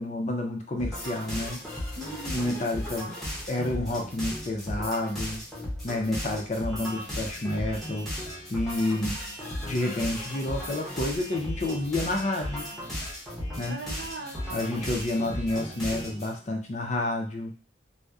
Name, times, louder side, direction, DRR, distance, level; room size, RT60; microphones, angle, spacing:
voice 1, 0.0-1.6 2.3-3.2 3.5-5.4 5.8-8.1 8.5-9.2 9.6-12.7 13.6-13.8 14.5-17.6, left 2 dB, 40° left, 3 dB, 0.4 m, -29 dB
sound 1, 0.8-16.3, equal, ahead, 0.7 m, -36 dB
voice 2, 2.0-2.7 13.7-14.6, right 1 dB, 75° right, -6 dB, 0.8 m, -38 dB
sound 2, 6.6-16.1, left 1 dB, 90° left, 0.9 m, -46 dB
2.6 x 2.0 x 2.3 m, 0.37 s
head